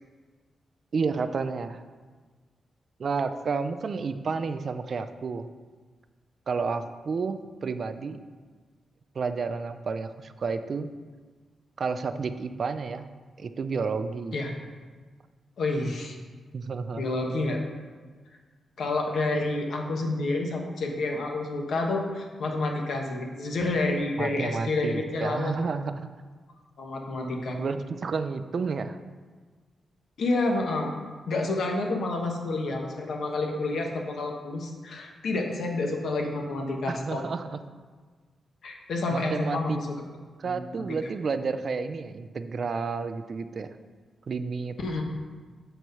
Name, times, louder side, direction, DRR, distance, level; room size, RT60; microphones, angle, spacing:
voice 1, 0.9-1.8 3.0-5.5 6.5-8.2 9.2-10.9 11.8-14.4 16.5-17.0 24.2-26.1 27.6-29.0 36.9-37.6 39.1-39.8 40.4-43.8 44.3-44.8, right 4 dB, 40° right, 10 dB, 0.4 m, -31 dB
voice 2, 15.6-16.2 17.0-17.6 18.8-25.5 26.8-27.6 30.2-30.9 31.3-37.2 38.6-39.8 40.4-40.6 44.8-45.0, left 2 dB, 60° left, 2 dB, 1.1 m, -29 dB
7.8 x 4.6 x 5.4 m, 1.5 s
wide cardioid pair, 175°, 0 cm